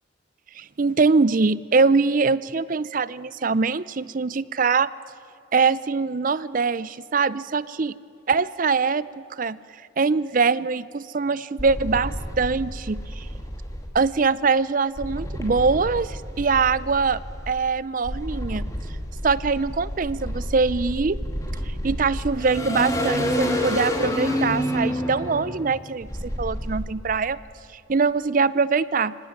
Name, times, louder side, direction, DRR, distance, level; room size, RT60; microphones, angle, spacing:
voice 1, 0.6-4.9 5.5-7.9 8.3-9.6 10.0-13.3 13.9-17.2 17.5-18.7 19.2-21.2 21.7-26.1 26.4-27.4 27.7-29.1, right 4 dB, 40° right, 19 dB, 0.5 m, -23 dB
sound 1, 11.6-13.9 15.0-17.5 18.0-26.8, equal, 15° left, 2.4 m, -29 dB
25.0 x 17.5 x 9.4 m, 2.5 s
head